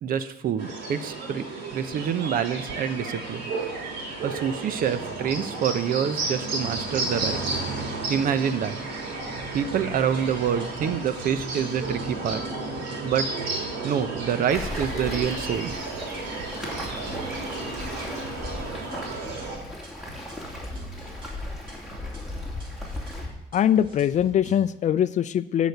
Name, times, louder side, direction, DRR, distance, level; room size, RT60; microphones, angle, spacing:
voice 1, 0.0-1.4 1.7-3.5 4.2-7.6 8.1-8.8 9.5-12.4 13.0-13.3 13.8-15.8, right 8 dB, 55° right, 12 dB, 0.8 m, -27 dB
sound 1, 0.6-19.6, right 3 dB, 75° right, 3.3 m, -33 dB
sound 2, 9.3-24.7, right 2 dB, 30° right, 2.9 m, -45 dB
Waves surf, 14.5-23.3, left 1 dB, ahead, 2.7 m, -36 dB
voice 2, 23.5-25.7, left 10 dB, 45° left, 15 dB, 0.4 m, -22 dB
10.5 x 5.1 x 8.0 m, 0.83 s
cardioid pair, 110°, 17 cm